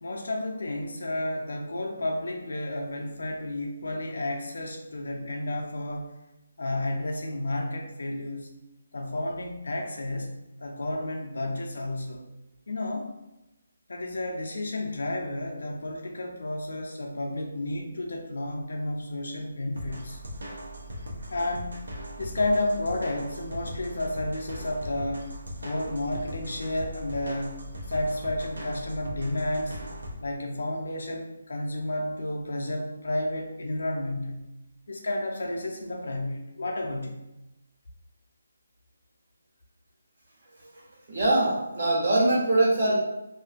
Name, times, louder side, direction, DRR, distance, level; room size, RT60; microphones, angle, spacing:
voice 1, 0.0-6.1 6.6-8.5 8.9-12.3 12.7-13.1 13.9-20.2 21.3-21.7 22.2-25.3 25.6-29.8 30.2-34.5 34.9-37.2, left 1 dB, 75° left, 1 dB, 0.5 m, -31 dB
sound 1, 19.7-30.1, equal, 75° right, 0.6 m, -39 dB
voice 2, 40.6-42.9, right 2 dB, 55° right, -6 dB, 1.3 m, -23 dB
2.5 x 2.4 x 2.4 m, 0.94 s
figure-of-eight pair, 160°, 0 cm